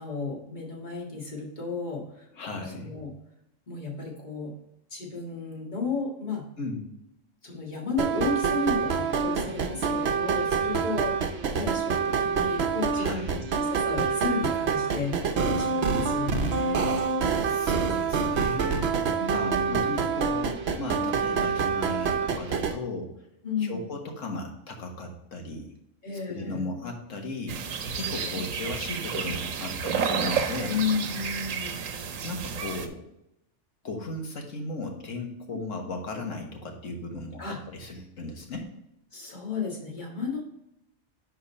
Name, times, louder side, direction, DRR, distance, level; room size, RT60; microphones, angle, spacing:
voice 1, 0.0-3.1 3.7-4.5 4.9-6.5 7.4-11.1 11.5-17.0 19.1-20.2 23.4-23.9 26.0-26.6 30.7-31.8 37.4-37.6 39.1-40.4, left 4 dB, 35° left, -2 dB, 1.9 m, -33 dB
voice 2, 2.4-2.9 6.6-6.9 12.9-13.4 17.5-18.9 19.3-23.1 23.6-25.7 26.1-27.6 27.9-30.8 32.2-33.0 33.8-38.7, left 2 dB, 75° left, 2 dB, 1.7 m, -36 dB
sound 1, 8.0-22.7, right 5 dB, 60° right, 0.9 m, -26 dB
sound 2, 27.5-32.9, right 6 dB, 85° right, 1.2 m, -31 dB
10.0 x 3.8 x 4.1 m, 0.83 s
omnidirectional pair, 1.3 m